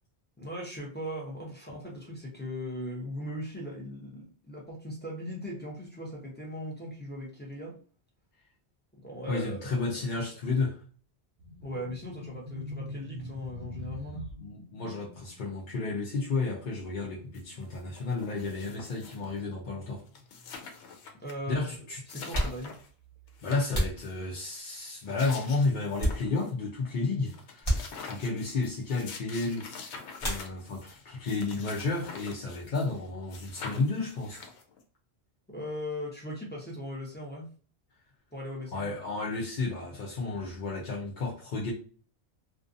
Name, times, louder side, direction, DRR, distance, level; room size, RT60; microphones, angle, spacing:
voice 1, 0.4-7.8 9.0-9.8 11.6-14.3 21.2-21.7 22.1-22.8 35.5-37.5 38.3-38.9, equal, 10° left, 0.6 m, -39 dB
voice 2, 9.3-10.8 14.4-20.0 21.5-22.0 23.4-27.7 28.1-29.9 30.2-34.5 38.7-41.7, left 3 dB, 55° left, 0.7 m, -32 dB
sound 1, 11.4-21.4 21.6-21.9 22.7-23.7, left 1 dB, 65° right, 0.8 m, -45 dB
sound 2, 17.3-17.4 17.7-19.4 19.8-19.9 20.1-21.3 21.7-21.8 22.1-22.9 23.3-24.2 24.9-26.5 26.9-27.0 27.3-33.0 33.3-34.8, left 5 dB, 85° left, 0.9 m, -45 dB
sound 3, 20.4-20.5 21.5-21.6 22.2-24.8 25.3-26.7 27.0-27.1 27.6-28.4 30.2-31.0 31.2-31.9 32.2-34.4, equal, 35° left, 1.1 m, -34 dB
2.5 x 2.2 x 2.5 m
omnidirectional pair, 1.1 m